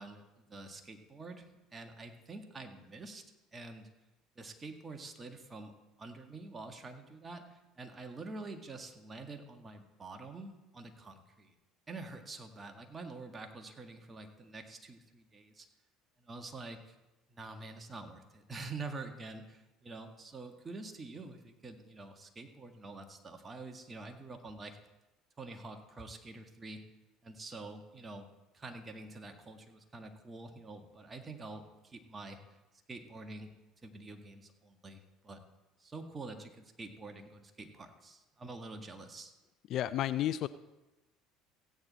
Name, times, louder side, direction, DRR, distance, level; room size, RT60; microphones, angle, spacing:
voice 1, 0.0-3.2 3.5-3.9 4.4-5.7 6.0-11.5 11.9-15.7 16.2-17.0 17.3-24.8 25.4-26.8 27.2-28.3 28.5-32.4 32.9-33.5 33.8-35.4 35.8-39.3, right 3 dB, 25° right, 5 dB, 1.8 m, -47 dB
voice 2, 39.7-40.5, left 12 dB, 55° left, 15 dB, 0.4 m, -31 dB
16.0 x 9.1 x 4.2 m, 1.0 s
hypercardioid pair, 70°, 0 cm